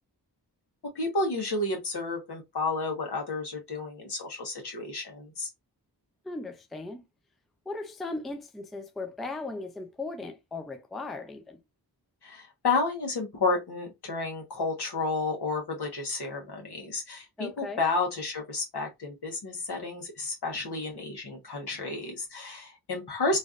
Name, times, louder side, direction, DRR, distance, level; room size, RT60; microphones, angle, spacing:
voice 1, 0.9-5.5 12.2-23.4, left 3 dB, 75° left, 1.2 m, -31 dB
voice 2, 6.2-7.0 7.7-11.6 17.4-17.8, left 3 dB, ahead, 0.4 m, -37 dB
3.1 x 2.6 x 2.4 m
wide cardioid pair, 100°, 40 cm